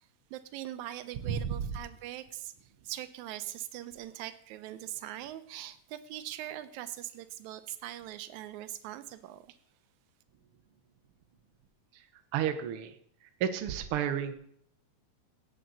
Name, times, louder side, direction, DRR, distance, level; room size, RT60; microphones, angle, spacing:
voice 1, 0.3-9.5, right 13 dB, 80° right, 13 dB, 2.0 m, -42 dB
voice 2, 1.3-1.7 12.3-12.9 13.4-14.3, right 9 dB, 65° right, 7 dB, 1.4 m, -31 dB
17.0 x 7.7 x 4.0 m, 0.66 s
omnidirectional pair, 3.4 m